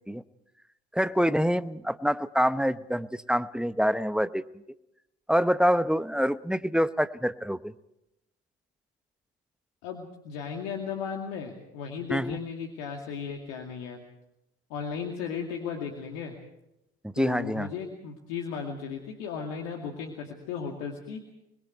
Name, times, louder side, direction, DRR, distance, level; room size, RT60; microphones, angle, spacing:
voice 1, 0.9-4.4 5.3-7.7 12.1-12.4 17.0-17.7, equal, ahead, 14 dB, 0.9 m, -26 dB
voice 2, 9.8-14.0 14.7-16.4 17.1-21.2, left 6 dB, 75° left, 2 dB, 2.4 m, -35 dB
27.0 x 21.5 x 4.7 m, 0.87 s
hypercardioid pair, 55°, 33 cm